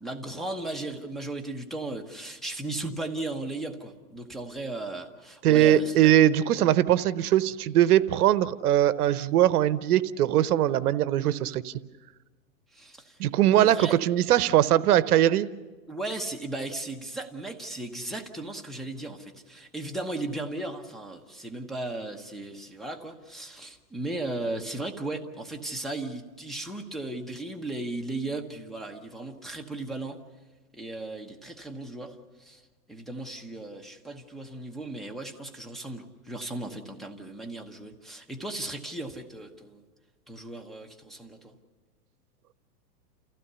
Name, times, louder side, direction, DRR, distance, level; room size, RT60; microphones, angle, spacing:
voice 1, 0.0-6.1 12.7-13.2 13.6-14.0 15.9-30.2 30.7-32.6 32.9-39.8 40.3-41.5, right 2 dB, ahead, 0 dB, 1.0 m, -36 dB
voice 2, 5.4-11.7 13.2-15.5, right 12 dB, 70° right, 15 dB, 0.9 m, -21 dB
29.0 x 16.0 x 6.9 m, 1.3 s
hypercardioid pair, 140°, 46 cm